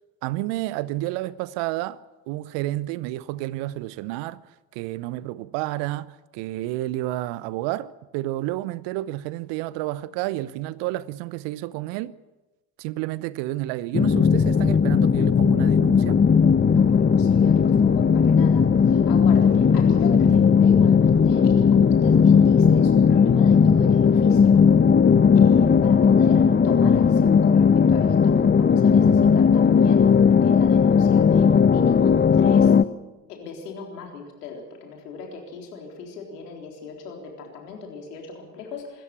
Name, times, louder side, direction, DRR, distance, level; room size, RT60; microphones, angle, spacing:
voice 1, 0.2-2.0 2.3-4.4 4.7-12.1 12.8-16.2, right 16 dB, 65° right, 0.9 m, -30 dB
sound 1, 13.9-32.8, left 6 dB, 20° left, 0.8 m, -17 dB
voice 2, 16.6-24.6 25.4-32.8 33.3-39.0, left 5 dB, 80° left, 4.0 m, -38 dB
25.5 x 14.0 x 8.4 m
figure-of-eight pair, 50°, 47 cm